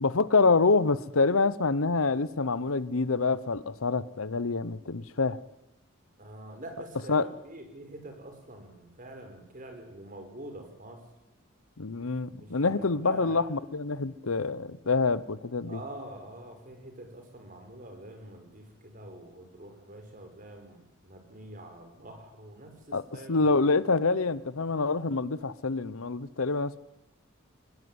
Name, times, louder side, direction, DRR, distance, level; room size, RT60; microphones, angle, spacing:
voice 1, 0.0-5.4 7.1-7.3 11.8-15.8 22.9-23.0 23.3-26.8, left 3 dB, 80° left, 18 dB, 0.9 m, -26 dB
voice 2, 6.2-11.1 12.4-13.5 15.6-23.6 24.3-24.4, right 1 dB, 40° right, 4 dB, 5.9 m, -45 dB
22.5 x 20.5 x 9.6 m, 0.93 s
head